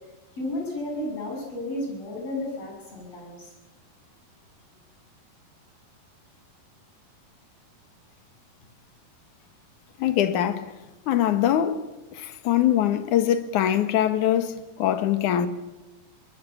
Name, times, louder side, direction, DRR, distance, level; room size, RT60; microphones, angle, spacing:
voice 1, 0.3-3.5, left 1 dB, 40° left, 8.7 m, -32 dB
voice 2, 10.0-10.7 11.1-11.8 12.1-15.5, left 11 dB, 60° left, 2.7 m, -23 dB
23.0 x 20.5 x 8.7 m
omnidirectional pair, 4.6 m